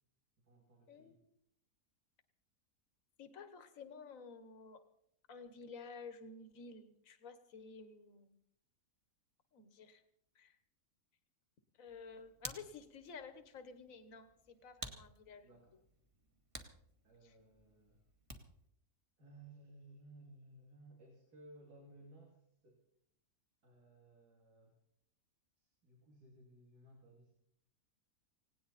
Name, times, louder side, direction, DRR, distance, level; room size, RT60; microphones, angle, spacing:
voice 1, 0.4-1.2 15.4-15.7 17.0-18.0 19.2-22.8 23.6-24.7 25.6-27.3, right 2 dB, 90° right, -1 dB, 3.5 m, -60 dB
voice 2, 0.9-1.2 3.2-4.8 5.3-8.4 9.5-10.0 10.4-10.6 11.8-15.5 17.2-17.3, left 5 dB, 65° left, 10 dB, 1.7 m, -52 dB
Hands, 11.8-18.7, right 1 dB, 20° right, 1.7 m, -53 dB
18.5 x 18.0 x 4.2 m, 0.73 s
omnidirectional pair, 1.6 m